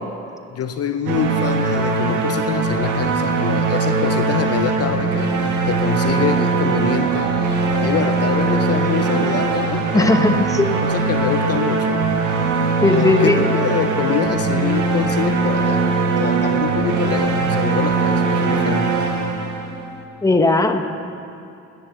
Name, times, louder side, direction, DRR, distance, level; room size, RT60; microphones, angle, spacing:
voice 1, 0.5-10.4 10.9-12.4 12.9-15.9 16.2-18.9, left 9 dB, 55° left, 9 dB, 0.6 m, -25 dB
sound 1, 1.1-20.0, right 4 dB, 80° right, 1.5 m, -20 dB
sound 2, 6.8-7.9 9.6-10.3 12.6-13.4, right 1 dB, 15° right, 2.1 m, -36 dB
voice 2, 9.9-10.7 12.8-13.4 20.2-20.8, left 2 dB, 10° left, 6 dB, 1.0 m, -17 dB
11.0 x 10.0 x 6.8 m, 2.7 s
cardioid pair, 90°, 30 cm